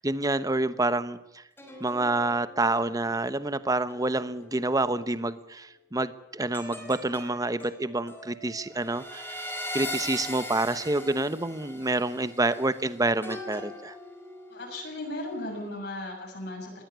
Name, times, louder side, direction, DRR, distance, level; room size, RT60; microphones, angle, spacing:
voice 1, 0.0-1.4 1.8-13.9, right 2 dB, 20° right, 13 dB, 1.1 m, -28 dB
sound 1, 1.6-5.2 6.5-15.1 15.5-15.7, left 1 dB, 10° left, 5.3 m, -41 dB
voice 2, 14.5-16.8, left 1 dB, 65° left, 0 dB, 6.9 m, -36 dB
21.0 x 15.5 x 8.3 m, 0.87 s
head